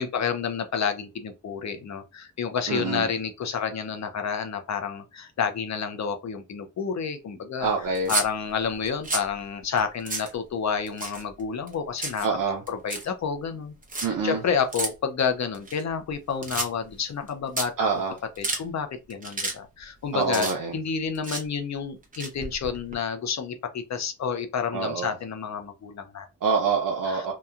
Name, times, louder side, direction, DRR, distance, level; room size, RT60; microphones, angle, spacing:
voice 1, 0.0-7.7 8.1-12.3 12.7-17.9 18.4-20.5 20.7-26.2 27.1-27.3, left 6 dB, 55° left, 0.6 m, -29 dB
voice 2, 2.7-3.1 7.6-8.1 12.2-12.6 14.0-14.4 17.8-18.2 20.1-20.7 24.7-25.1 26.4-27.3, right 5 dB, 75° right, 0.6 m, -26 dB
sound 1, 7.9-8.3 8.8-9.3 9.8-9.9 10.1-10.3 10.9-11.4 11.7-12.3 12.7-13.1 13.8-14.1 14.7-14.9 15.5-16.1 16.4-16.9 17.3-17.4 17.6-17.7 18.2-18.6 19.1-19.5 19.8-20.9 21.1-21.4 22.0-22.9, right 2 dB, 25° right, 0.8 m, -30 dB
2.9 x 2.2 x 2.4 m
wide cardioid pair, 105°, 32 cm